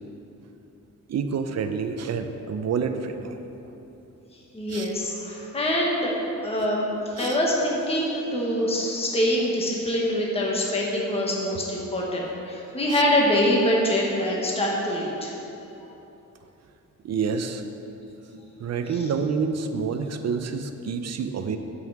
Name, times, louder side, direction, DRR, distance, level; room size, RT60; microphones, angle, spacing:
voice 1, 1.1-3.8 4.7-4.9 7.2-7.4 12.9-13.0 17.0-17.7 18.6-21.6, right 5 dB, 55° right, 7 dB, 0.6 m, -28 dB
voice 2, 4.5-6.1 6.4-6.9 7.2-15.3, left 1 dB, 20° left, -3 dB, 1.2 m, -24 dB
9.3 x 5.5 x 7.2 m, 2.9 s
wide cardioid pair, 170°, 31 cm